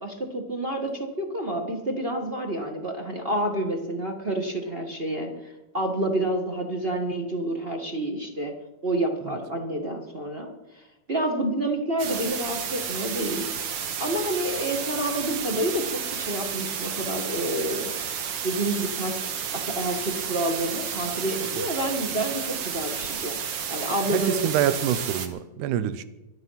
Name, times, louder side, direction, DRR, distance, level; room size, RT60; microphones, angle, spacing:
voice 1, 0.0-8.5 8.8-13.5 14.0-17.9 18.4-19.3 19.5-23.4 23.7-24.4, right 1 dB, 40° right, 3 dB, 0.8 m, -29 dB
sound 1, 12.0-25.3, right 7 dB, 60° right, 2.0 m, -32 dB
voice 2, 24.1-26.0, right 10 dB, 90° right, 14 dB, 2.2 m, -26 dB
24.0 x 8.1 x 5.6 m, 1.0 s
omnidirectional pair, 3.5 m